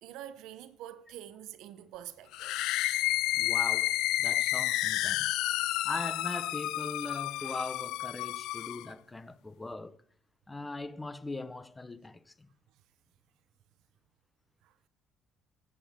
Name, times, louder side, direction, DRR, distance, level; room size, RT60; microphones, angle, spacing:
voice 1, 0.0-2.6 12.7-12.8 14.6-14.8, right 12 dB, 80° right, 0.7 m, -46 dB
sound 1, 2.3-8.9, left 16 dB, 80° left, 0.3 m, -30 dB
voice 2, 3.3-5.4 5.8-10.0 10.5-12.5, left 2 dB, 15° left, 0.6 m, -40 dB
13.5 x 8.4 x 3.6 m
cardioid pair, 120°, 0 cm